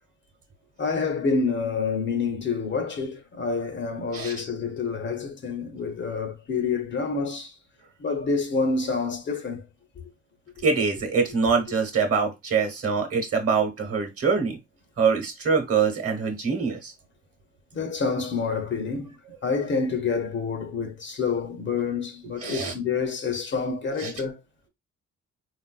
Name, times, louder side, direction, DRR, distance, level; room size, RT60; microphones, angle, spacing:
voice 1, 0.8-7.5 8.0-9.6 10.0-10.1 17.7-19.2 19.4-24.4, left 4 dB, 40° left, 0.6 m, -28 dB
voice 2, 10.6-14.6 15.0-16.9 22.4-22.7 24.0-24.1, right 5 dB, 50° right, 1.0 m, -24 dB
3.6 x 2.5 x 2.2 m
cardioid pair, 90°, 30 cm